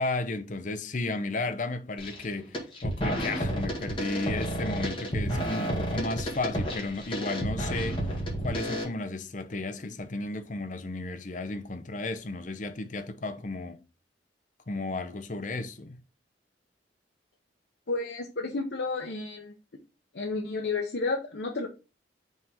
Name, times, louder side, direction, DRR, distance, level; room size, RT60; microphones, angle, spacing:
voice 1, 0.0-8.0 8.4-13.8 14.7-16.0, left 2 dB, 45° left, 0.7 m, -33 dB
sound 1, 2.0-2.2 2.5-8.8, equal, 30° left, 1.9 m, -31 dB
voice 2, 17.9-19.5 20.1-21.7, left 3 dB, 70° left, 0.9 m, -31 dB
5.3 x 3.6 x 5.5 m
head